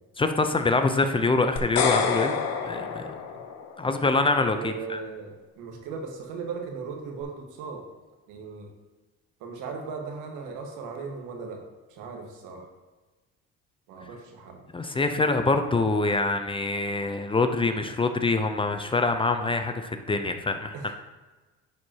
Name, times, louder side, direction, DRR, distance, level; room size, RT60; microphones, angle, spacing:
voice 1, 0.2-2.4 2.6-3.0 3.8-5.0 14.7-20.9, left 3 dB, 15° left, 7 dB, 0.5 m, -25 dB
sound 1, 1.6-3.9, left 6 dB, 60° left, 0.9 m, -28 dB
voice 2, 4.5-7.8 8.3-8.7 9.4-12.7 13.9-14.6 20.7-20.9, right 5 dB, 80° right, 2 dB, 1.5 m, -38 dB
10.5 x 4.7 x 2.8 m, 1.2 s
supercardioid pair, 95°, 31 cm